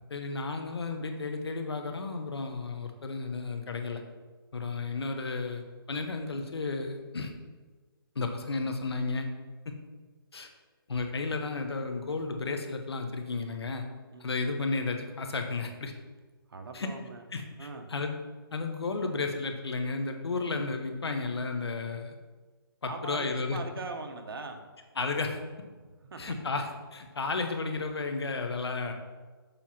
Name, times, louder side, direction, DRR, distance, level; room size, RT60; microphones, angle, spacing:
voice 1, 0.1-4.0 4.5-7.3 8.1-9.3 9.6-9.7 10.3-10.5 10.9-13.8 14.2-15.9 16.7-16.9 17.3-18.2 18.5-22.1 22.8-23.6 25.0-25.4 26.2-28.9, left 3 dB, 80° left, 5 dB, 1.2 m, -33 dB
voice 2, 16.5-17.2 17.6-17.9 22.8-24.6 26.0-26.3, right 3 dB, 65° right, 5 dB, 1.1 m, -41 dB
7.1 x 4.4 x 6.0 m, 1.4 s
hypercardioid pair, 165°, 13 cm